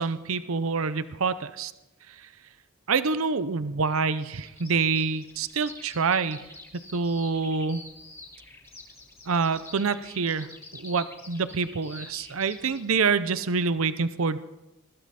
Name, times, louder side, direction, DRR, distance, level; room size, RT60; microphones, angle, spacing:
voice 1, 0.0-1.7 2.1-2.3 2.9-6.5 6.9-7.8 9.3-14.4, right 5 dB, 75° right, 13 dB, 0.7 m, -26 dB
Bird vocalization bird call bird song, 4.4-12.8, left 2 dB, 15° left, 2.7 m, -47 dB
20.5 x 15.5 x 4.2 m, 0.96 s
head